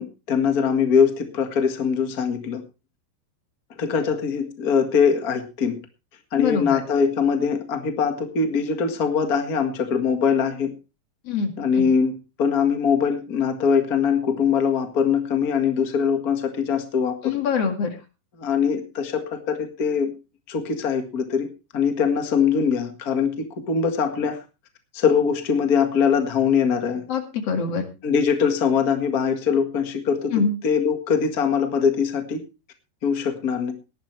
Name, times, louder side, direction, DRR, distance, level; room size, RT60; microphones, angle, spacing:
voice 1, 0.0-2.6 3.8-5.8 6.3-10.7 11.6-17.3 18.4-20.1 20.5-24.4 24.9-27.1 28.0-32.4 33.0-33.7, left 6 dB, 75° left, 6 dB, 0.8 m, -22 dB
voice 2, 6.4-6.8 11.3-11.5 11.8-11.9 17.2-17.9 27.1-27.8 30.3-30.5, left 6 dB, 45° left, 5 dB, 2.5 m, -24 dB
19.0 x 11.5 x 3.3 m, 0.29 s
omnidirectional pair, 4.8 m